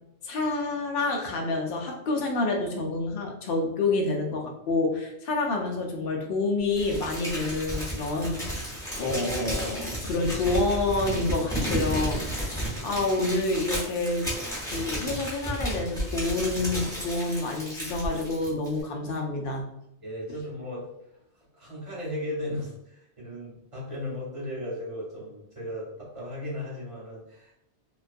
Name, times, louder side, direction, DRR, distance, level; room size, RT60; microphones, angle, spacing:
voice 1, 0.2-8.6 8.9-14.3 14.6-19.7, left 2 dB, 65° left, 1 dB, 0.7 m, -28 dB
Crumpling crinkling, 6.7-18.8, equal, 5° left, 0.7 m, -33 dB
voice 2, 20.0-20.9 21.5-27.5, left 1 dB, 35° right, -5 dB, 0.8 m, -36 dB
2.3 x 2.2 x 2.5 m, 0.82 s
omnidirectional pair, 1.2 m